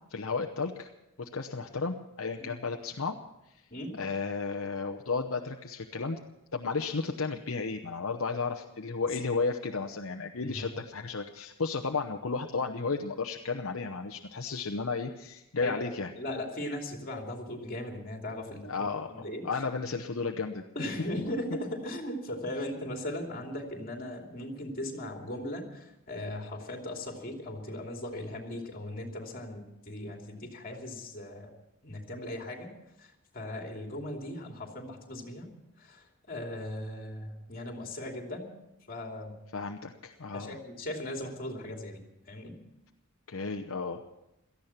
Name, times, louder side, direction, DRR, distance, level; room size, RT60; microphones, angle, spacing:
voice 1, 0.1-0.9 1.2-3.2 3.5-3.6 4.0-6.2 6.5-16.1 18.7-20.6 39.5-40.6 43.3-44.0, left 4 dB, 70° left, 4 dB, 0.9 m, -33 dB
voice 2, 15.6-19.4 20.7-31.5 31.8-32.7 33.0-35.5 35.8-38.5 38.9-39.3 40.3-42.6, left 1 dB, 40° left, 2 dB, 2.9 m, -38 dB
17.5 x 14.0 x 5.8 m, 0.90 s
head